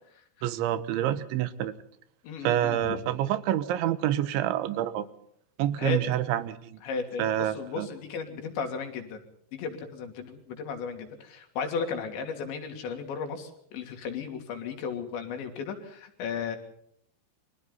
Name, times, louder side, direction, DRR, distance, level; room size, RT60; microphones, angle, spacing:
voice 1, 0.4-1.7 2.4-5.1 5.6-6.8 7.2-7.9, right 12 dB, 90° right, 13 dB, 3.6 m, -27 dB
voice 2, 2.2-3.0 5.8-6.0 6.8-9.2 9.5-16.6, left 6 dB, 75° left, 5 dB, 5.2 m, -35 dB
30.0 x 24.0 x 4.1 m, 0.67 s
omnidirectional pair, 5.2 m